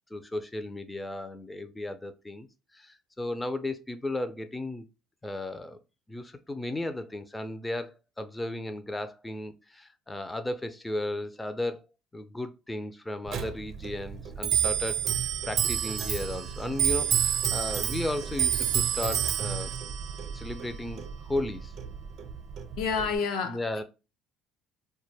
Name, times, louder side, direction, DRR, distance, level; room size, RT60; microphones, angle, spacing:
voice 1, 0.1-2.5 2.7-4.9 5.2-5.8 6.1-11.8 12.1-19.7 20.3-21.7 23.5-23.8, left 1 dB, 10° left, 0.4 m, -35 dB
Clock, 13.3-23.2, right 9 dB, 60° right, 0.5 m, -29 dB
voice 2, 22.8-23.8, left 5 dB, 75° left, 0.5 m, -29 dB
2.2 x 2.0 x 3.2 m
supercardioid pair, 80°, 0 cm